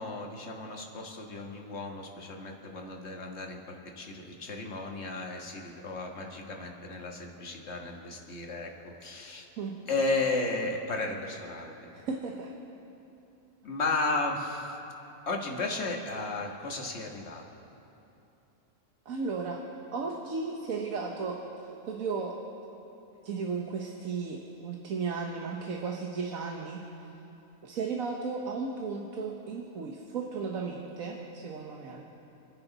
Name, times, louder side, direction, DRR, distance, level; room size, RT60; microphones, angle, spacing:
voice 1, 0.0-9.4 9.9-12.0 13.6-14.8 15.2-17.4, left 3 dB, 50° left, 1 dB, 1.8 m, -34 dB
voice 2, 11.9-12.5 19.0-19.6 19.9-22.4 23.2-27.2 27.6-32.0, right 4 dB, 80° right, 0 dB, 1.5 m, -35 dB
29.5 x 10.0 x 4.0 m, 2.9 s
omnidirectional pair, 1.4 m